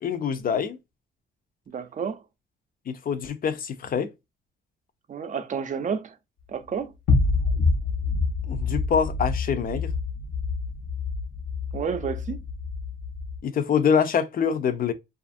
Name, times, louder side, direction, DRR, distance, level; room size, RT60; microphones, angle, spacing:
voice 1, 0.0-0.8 2.9-4.1 8.5-9.9 13.4-14.9, left 7 dB, 45° left, 0.5 m, -25 dB
voice 2, 1.7-2.2 5.1-6.1 6.5-6.9 11.7-12.4, right 6 dB, 40° right, 0.5 m, -30 dB
sound 1, 7.1-13.4, left 4 dB, 75° left, 0.9 m, -27 dB
2.5 x 2.4 x 2.5 m
cardioid pair, 90°, 20 cm